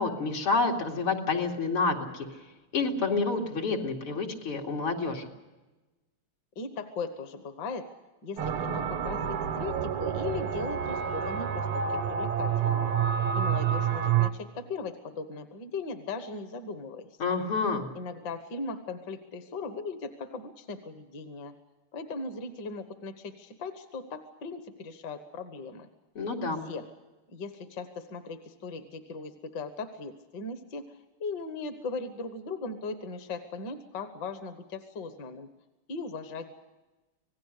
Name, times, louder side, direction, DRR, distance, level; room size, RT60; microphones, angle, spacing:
voice 1, 0.0-2.3 2.7-5.3 17.2-17.9 26.1-26.6, left 4 dB, 75° left, 0 dB, 3.3 m, -28 dB
voice 2, 6.5-7.9 8.2-12.9 13.4-17.1 17.9-21.5 21.9-25.9 26.6-26.9 27.3-35.5 35.9-36.5, left 4 dB, 55° left, 8 dB, 1.9 m, -38 dB
sound 1, 8.4-14.3, right 8 dB, 85° right, 2.0 m, -28 dB
26.5 x 18.5 x 6.6 m, 1.1 s
omnidirectional pair, 2.4 m